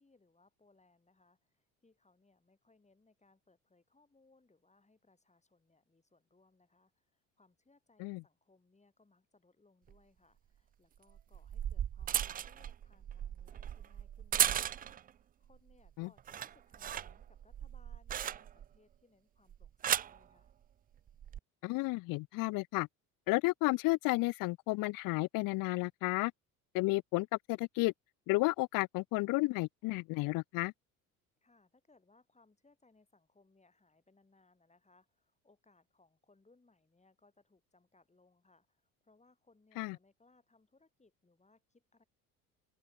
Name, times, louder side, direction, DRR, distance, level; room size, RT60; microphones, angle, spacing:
voice 1, 0.0-15.0 15.4-20.5 31.4-42.0, left 3 dB, 15° left, 5.2 m, -69 dB
sound 1, 9.9-10.0 11.1-15.1 15.5-15.9 16.2-18.8 19.5-20.2 21.1-21.4, right 10 dB, 20° right, 0.4 m, -36 dB
voice 2, 21.6-22.9 23.3-26.3 26.7-27.9 28.3-30.7 39.8-40.0, left 23 dB, 50° left, 0.5 m, -32 dB
open air
hypercardioid pair, 65°, 45 cm